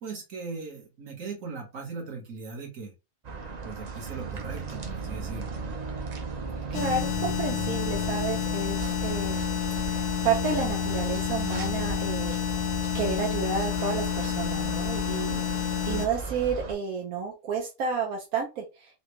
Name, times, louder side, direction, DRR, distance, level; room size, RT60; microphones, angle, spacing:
voice 1, 0.0-2.9 3.6-5.5, right 4 dB, 70° right, 0 dB, 1.6 m, -39 dB
sound 1, 3.2-16.7, right 4 dB, 45° right, 0.5 m, -36 dB
sound 2, 6.7-16.1, left 10 dB, 90° left, 0.4 m, -29 dB
voice 2, 6.7-9.5 9.9-12.4 12.9-19.0, right 5 dB, 85° right, 0 dB, 1.2 m, -31 dB
4.0 x 2.2 x 3.0 m, 0.27 s
omnidirectional pair, 1.5 m